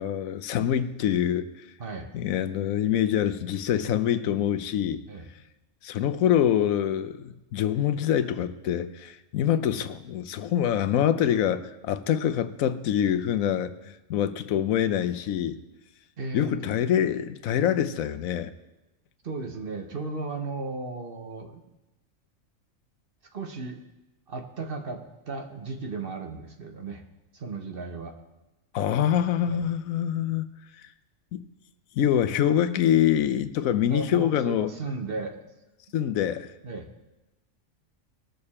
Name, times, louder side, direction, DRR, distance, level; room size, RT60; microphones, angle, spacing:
voice 1, 0.0-1.5 2.1-5.0 5.8-13.7 14.1-15.6 16.3-18.5 28.7-30.5 32.0-34.7 35.9-36.5, left 10 dB, 85° left, 11 dB, 1.1 m, -25 dB
voice 2, 1.8-2.1 5.0-5.3 16.2-16.5 19.2-21.6 23.3-23.8 24.3-27.0 27.3-28.2 29.5-29.6 33.9-35.4 36.6-36.9, right 3 dB, 45° right, 4 dB, 1.2 m, -35 dB
19.5 x 6.8 x 4.3 m, 1.0 s
omnidirectional pair, 1.4 m